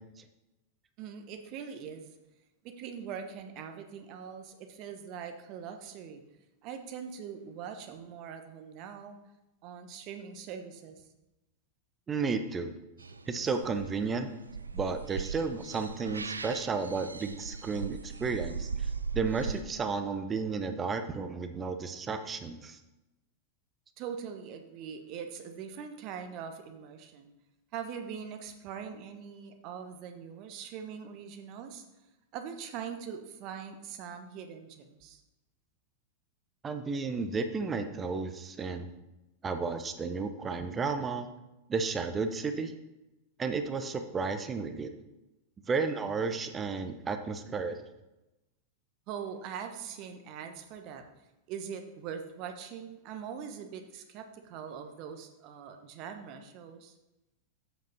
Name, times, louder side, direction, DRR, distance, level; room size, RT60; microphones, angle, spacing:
voice 1, 1.0-2.1 2.6-6.2 6.6-9.2 9.6-11.0 24.0-27.3 27.7-31.8 32.3-35.2 49.1-51.0 51.5-56.9, right 7 dB, 40° right, 6 dB, 1.0 m, -42 dB
voice 2, 12.1-12.7 13.3-14.3 14.7-22.8 36.6-38.9 39.4-41.3 41.7-42.7 43.4-44.9 45.7-47.8, right 4 dB, 20° right, 8 dB, 0.7 m, -33 dB
sound 1, 13.0-19.6, right 5 dB, 75° right, 0.4 m, -39 dB
7.9 x 5.2 x 5.6 m, 0.98 s
figure-of-eight pair, 90°, 0 cm